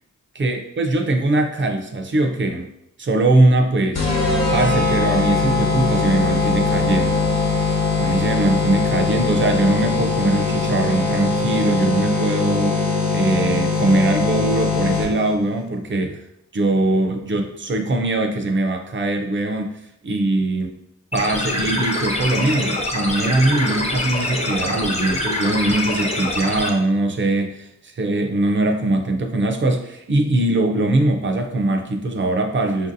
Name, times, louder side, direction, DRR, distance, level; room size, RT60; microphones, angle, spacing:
voice 1, 0.3-2.7 3.0-4.0 4.5-7.3 8.0-12.8 13.1-16.2 16.5-19.7 20.0-20.8 21.1-32.9, right 2 dB, 40° right, 4 dB, 0.4 m, -21 dB
sound 1, 3.9-15.3, left 3 dB, 50° left, 1.0 m, -21 dB
sound 2, 21.1-26.7, left 1 dB, 20° left, 0.5 m, -24 dB
5.5 x 2.6 x 2.6 m, 0.79 s
wide cardioid pair, 165°, 32 cm